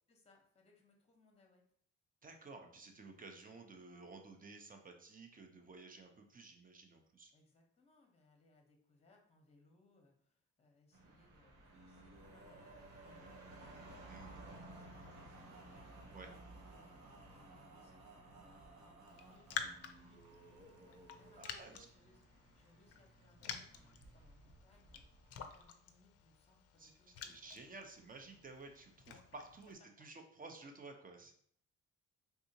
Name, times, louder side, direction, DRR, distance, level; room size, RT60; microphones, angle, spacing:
voice 1, 0.1-1.6 7.3-14.3 14.7-15.9 16.7-22.2 22.5-27.5 29.2-29.3 30.0-30.1, left 2 dB, 20° left, 2 dB, 0.9 m, -69 dB
voice 2, 2.2-7.3 14.1-14.4 16.1-16.3 21.4-21.9 26.8-31.3, right 3 dB, 30° right, 4 dB, 0.6 m, -54 dB
sound 1, 10.9-25.7, right 1 dB, 85° right, 0.9 m, -59 dB
Male singing, 11.7-21.5, right 2 dB, 60° right, 1.0 m, -60 dB
Raindrop, 19.1-29.7, left 7 dB, 55° left, 0.4 m, -50 dB
3.6 x 2.7 x 2.7 m, 0.63 s
cardioid pair, 90°, 30 cm